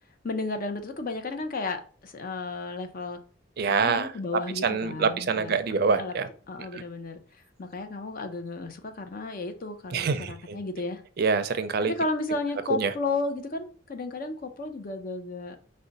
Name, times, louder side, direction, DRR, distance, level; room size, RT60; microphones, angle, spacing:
voice 1, 0.2-3.2 3.6-5.6 6.0-6.1 6.5-7.2 7.6-11.0 11.8-15.6, left 3 dB, 50° left, 0.6 m, -33 dB
voice 2, 3.6-4.1 4.6-6.3 6.7-6.8 9.9-10.6 11.2-11.9 12.7-12.9, right 5 dB, 55° right, 0.4 m, -25 dB
4.9 x 2.2 x 3.9 m
head